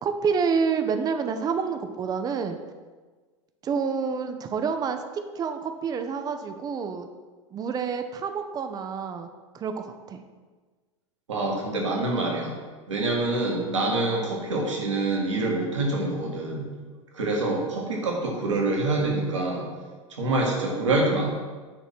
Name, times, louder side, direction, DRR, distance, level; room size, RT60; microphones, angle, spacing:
voice 1, 0.0-2.6 3.6-7.1 7.5-9.3 9.5-10.2, right 6 dB, 25° right, 7 dB, 0.7 m, -28 dB
voice 2, 11.3-12.5 12.9-16.6 17.1-19.7 20.1-21.3, right 2 dB, 70° right, -1 dB, 2.0 m, -26 dB
9.5 x 4.1 x 5.9 m, 1.4 s
figure-of-eight pair, 80°, 16 cm